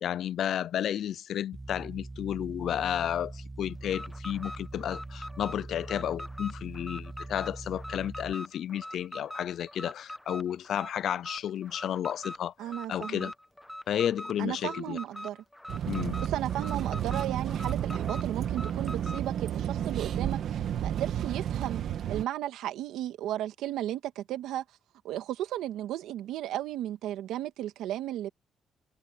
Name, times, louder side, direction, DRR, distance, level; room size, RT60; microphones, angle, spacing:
voice 1, 0.0-12.5 12.9-13.3 13.9-15.0 15.9-16.2, left 10 dB, 70° left, 0.5 m, -32 dB
sound 1, 1.5-8.3, right 2 dB, 15° right, 1.0 m, -42 dB
Alarm, 3.8-19.3, left 1 dB, 5° left, 1.2 m, -43 dB
voice 2, 12.6-13.3 14.4-15.4 16.2-21.8 22.1-24.6 25.0-28.3, right 13 dB, 90° right, 2.0 m, -35 dB
sound 2, 15.7-22.2, right 10 dB, 70° right, 2.2 m, -31 dB
cardioid pair, 90°, 0 cm